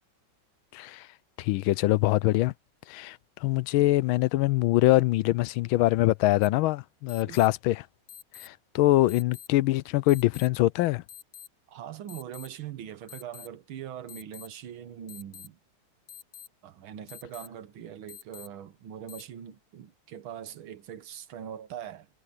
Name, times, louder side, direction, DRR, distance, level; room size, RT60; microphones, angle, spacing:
voice 1, 0.7-1.1 1.4-2.5 2.9-7.9 8.4-11.0, left 17 dB, 90° left, 1.4 m, -24 dB
sound 1, 6.4-6.5 7.1-7.5 8.1-8.5 9.1-9.5 10.1-10.5 11.1-11.5 12.1-12.5 13.1-13.5 14.1-14.5 15.1-15.5 16.1-16.5 17.1-17.5 18.1-18.5 19.1-19.2, left 10 dB, 55° left, 1.8 m, -46 dB
voice 2, 11.7-15.6 16.6-22.1, right 10 dB, 85° right, 1.9 m, -42 dB
omnidirectional pair, 2.2 m